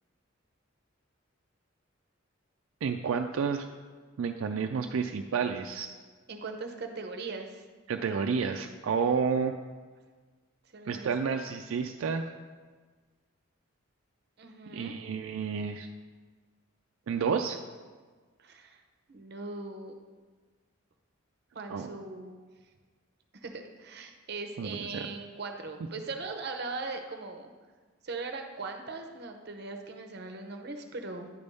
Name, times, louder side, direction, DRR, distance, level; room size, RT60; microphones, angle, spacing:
voice 1, 2.8-3.7 4.2-5.9 7.9-9.5 10.9-12.2 14.7-15.9 17.1-17.6 21.7-21.9 24.6-25.1, right 6 dB, 80° right, 4 dB, 0.4 m, -30 dB
voice 2, 6.3-7.6 10.7-11.1 14.4-14.9 18.4-18.8 19.1-19.9 21.5-22.3 23.3-27.5 28.0-31.3, right 3 dB, 50° right, 5 dB, 0.7 m, -39 dB
9.7 x 3.5 x 5.3 m, 1.4 s
head